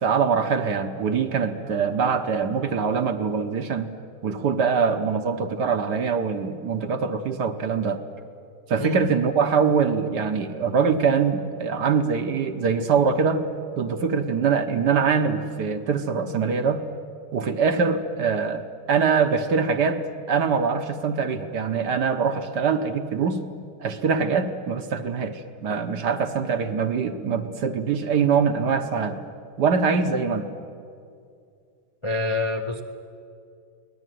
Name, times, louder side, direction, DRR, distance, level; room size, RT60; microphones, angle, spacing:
voice 1, 0.0-3.9 4.2-8.0 8.7-13.4 13.8-16.8 17.3-20.0 20.3-23.4 23.8-29.2 29.6-30.5, right 5 dB, 55° right, 8 dB, 1.5 m, -23 dB
voice 2, 32.0-32.8, left 3 dB, 35° left, 4 dB, 0.4 m, -26 dB
24.0 x 18.5 x 9.3 m, 2.4 s
omnidirectional pair, 2.4 m